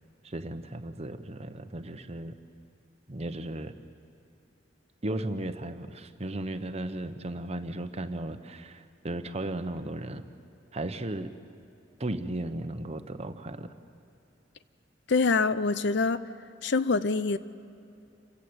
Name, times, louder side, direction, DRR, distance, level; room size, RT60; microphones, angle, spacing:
voice 1, 0.2-2.4 3.1-3.7 5.0-10.2 10.7-11.3 12.0-13.7, right 1 dB, 35° right, 0.9 m, -35 dB
voice 2, 15.1-16.2 16.6-17.4, left 4 dB, 65° left, 0.6 m, -25 dB
28.0 x 15.5 x 8.0 m
head